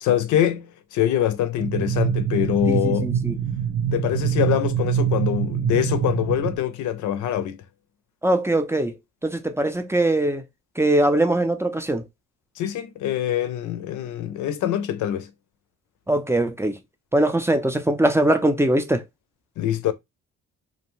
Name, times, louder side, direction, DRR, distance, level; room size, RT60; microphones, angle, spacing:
voice 1, 0.0-3.1 3.9-7.6 12.6-15.3 19.6-19.9, left 11 dB, 80° left, 0.5 m, -24 dB
sound 1, 1.6-6.6, right 8 dB, 70° right, 1.0 m, -24 dB
voice 2, 2.7-3.3 8.2-8.9 9.2-10.4 10.8-12.0 16.1-16.8 17.1-19.0, right 1 dB, 10° right, 0.4 m, -21 dB
2.6 x 2.1 x 3.0 m
cardioid pair, 90°, 30 cm